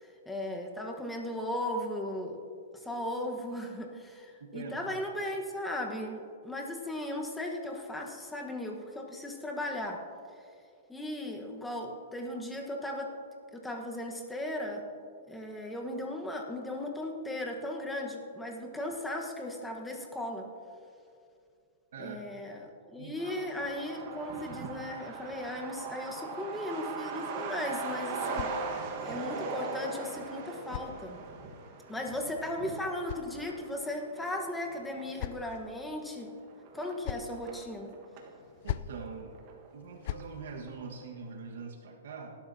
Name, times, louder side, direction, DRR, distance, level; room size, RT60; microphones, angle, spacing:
voice 1, 0.0-2.4 2.7-10.1 10.9-13.2 13.5-14.9 15.3-20.5 22.0-28.5 29.0-31.2 31.9-36.3 36.7-37.9, left 1 dB, 5° left, 1 dB, 1.2 m, -37 dB
voice 2, 4.5-4.9 21.9-22.2 23.0-23.4 38.6-39.4 39.7-42.4, right 5 dB, 75° right, 1 dB, 1.5 m, -43 dB
Truck, 23.2-38.4 38.7-38.8 39.0-39.9 40.2-40.3 40.7-41.0, right 4 dB, 40° right, 1.4 m, -40 dB
sound 1, 27.5-29.1 30.1-31.5 32.5-33.9 34.7-35.7 36.7-37.4 38.4-39.0 39.8-40.3, left 11 dB, 50° left, 0.4 m, -42 dB
18.5 x 12.0 x 2.8 m, 2.4 s
hypercardioid pair, 145°, 0 cm